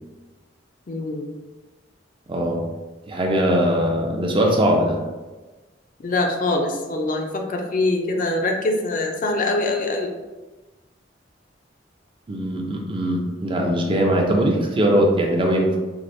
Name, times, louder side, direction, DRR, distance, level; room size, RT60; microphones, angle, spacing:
voice 1, 0.9-1.3 6.0-10.1, left 2 dB, 45° left, 2 dB, 0.4 m, -23 dB
voice 2, 2.3-2.7 3.1-5.0 12.3-15.8, equal, 30° right, 0 dB, 0.5 m, -20 dB
4.6 x 2.0 x 2.6 m, 1.2 s
head